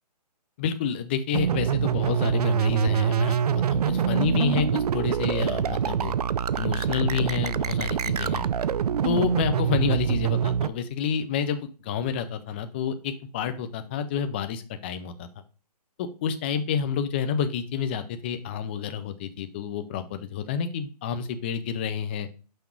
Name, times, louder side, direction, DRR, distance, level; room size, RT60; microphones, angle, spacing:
voice 1, 0.6-6.1 6.6-8.5 9.0-15.3 16.0-22.3, left 7 dB, 15° left, 9 dB, 0.4 m, -29 dB
sound 1, 1.3-10.7, right 8 dB, 70° right, 0.5 m, -25 dB
6.0 x 5.0 x 4.5 m, 0.35 s
hypercardioid pair, 160°, 21 cm